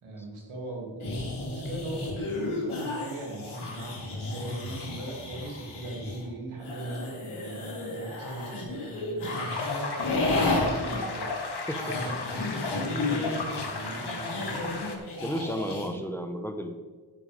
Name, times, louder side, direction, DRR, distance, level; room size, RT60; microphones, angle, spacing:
voice 1, 0.0-9.6 10.0-11.3 11.9-14.9 15.6-16.0, right 2 dB, 80° right, -2 dB, 3.1 m, -39 dB
sound 1, 1.0-6.3 6.6-15.9, left 2 dB, 80° left, 3.5 m, -33 dB
sound 2, 9.5-15.0, left 3 dB, 55° left, 2.1 m, -34 dB
voice 2, 11.7-12.0 15.2-16.8, equal, 5° left, 6 dB, 1.1 m, -33 dB
11.0 x 10.5 x 3.6 m, 1.4 s
cardioid pair, 50°, 49 cm